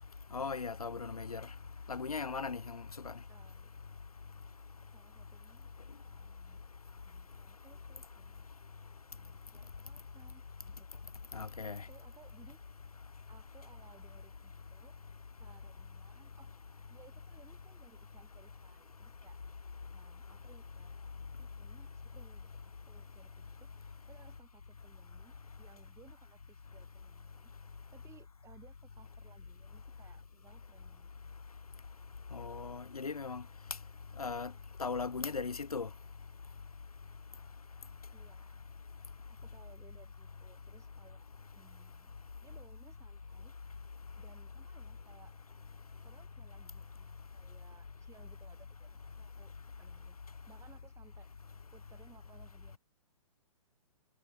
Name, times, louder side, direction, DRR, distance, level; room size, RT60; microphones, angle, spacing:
voice 1, 0.3-1.5 1.9-3.1 11.3-11.9 32.3-33.4 34.2-34.5 34.8-35.9, left 5 dB, 90° left, 1.2 m, -38 dB
voice 2, 3.3-3.8 4.9-5.7 6.0-6.6 7.0-8.5 9.2-11.1 11.6-12.6 13.3-14.9 15.3-16.5 16.9-19.4 19.9-21.0 21.4-27.5 27.9-31.1 38.1-38.6 39.3-41.2 41.5-42.1 42.4-43.5 44.2-45.3 46.0-49.5 49.8-50.2 50.5-51.3 51.7-52.8, right 8 dB, 15° right, 5.1 m, -63 dB
hypercardioid pair, 125°, 18 cm